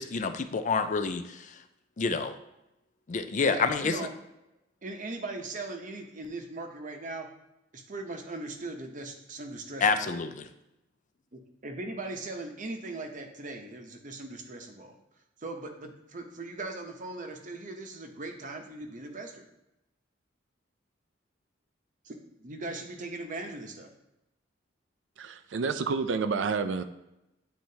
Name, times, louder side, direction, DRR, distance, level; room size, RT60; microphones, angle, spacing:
voice 1, 0.0-1.6 2.0-2.4 3.1-4.0 9.8-10.5, left 5 dB, 40° left, 9 dB, 0.4 m, -28 dB
voice 2, 3.4-4.1 4.8-7.3 7.7-10.2 11.3-15.0 15.4-19.4 22.0-23.9, right 2 dB, 40° right, 4 dB, 0.8 m, -39 dB
voice 3, 25.2-26.8, right 5 dB, 70° right, 9 dB, 0.4 m, -29 dB
9.4 x 4.3 x 2.8 m, 0.89 s
head